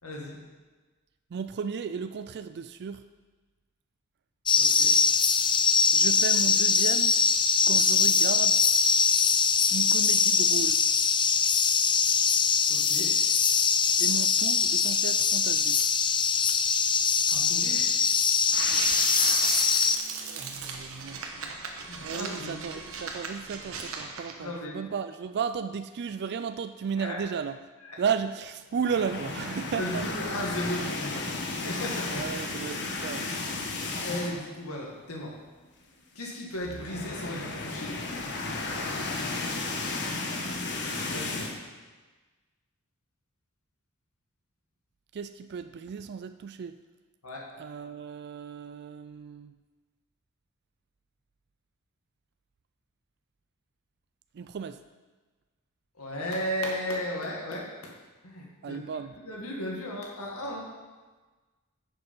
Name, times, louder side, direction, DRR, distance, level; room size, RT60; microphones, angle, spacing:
voice 1, 0.0-0.4 4.6-5.0 12.7-13.1 17.3-17.9 21.9-22.6 24.4-24.8 27.0-27.2 27.8-28.0 29.8-32.2 34.0-35.4 36.2-38.0 41.0-41.5 47.2-47.5 56.0-57.9 58.2-58.8 59.2-60.7, equal, 90° left, -1 dB, 2.1 m, -35 dB
voice 2, 1.3-3.0 5.9-7.2 7.7-8.6 9.7-10.8 14.0-15.8 20.2-21.5 22.0-27.6 28.0-30.1 32.1-33.3 45.1-46.8 47.5-49.6 54.3-54.8 58.6-59.1, right 6 dB, 50° right, 10 dB, 0.4 m, -34 dB
sound 1, 4.5-20.0, left 6 dB, 20° left, 0.4 m, -23 dB
sound 2, 18.5-24.3, right 5 dB, 70° right, 1.2 m, -35 dB
sound 3, 28.8-34.6 34.9-35.1 35.4-35.5 36.5-41.6, left 3 dB, 55° left, 1.2 m, -34 dB
10.0 x 6.8 x 5.4 m, 1.3 s
head